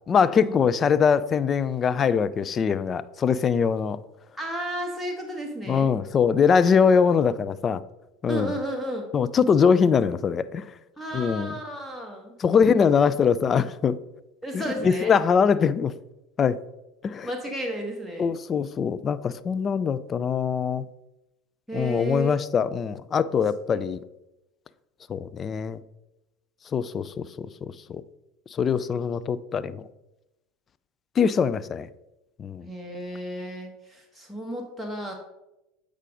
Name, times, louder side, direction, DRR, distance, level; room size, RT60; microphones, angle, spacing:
voice 1, 0.1-4.0 5.7-7.8 8.2-8.5 9.1-10.7 11.1-11.5 12.4-14.0 14.5-15.9 16.4-16.6 17.0-17.3 18.2-20.8 21.7-24.0 25.1-25.8 26.7-28.0 28.5-29.9 31.2-31.9 32.4-32.7, left 6 dB, 35° left, 15 dB, 0.4 m, -22 dB
voice 2, 4.4-5.9 8.3-9.1 11.0-12.4 14.4-15.1 17.2-18.3 21.7-22.3 23.7-23.8 32.6-35.1, right 1 dB, 5° left, 1 dB, 1.3 m, -33 dB
8.1 x 4.9 x 3.8 m, 0.93 s
hypercardioid pair, 75°, 0 cm